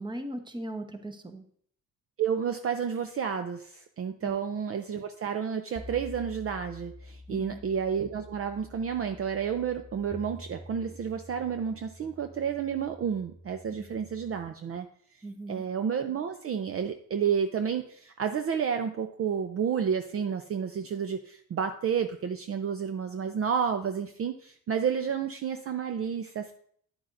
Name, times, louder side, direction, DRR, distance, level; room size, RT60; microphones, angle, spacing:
voice 1, 0.0-1.4 4.2-4.3 7.3-7.6 13.8-13.9 15.2-15.6, right 1 dB, 15° right, 6 dB, 1.0 m, -38 dB
voice 2, 2.2-14.9 15.5-26.5, right 7 dB, 45° right, 7 dB, 0.6 m, -31 dB
sound 1, 5.8-14.5, left 1 dB, 5° left, 0.3 m, -48 dB
9.6 x 8.6 x 2.6 m, 0.62 s
cardioid pair, 90°, 34 cm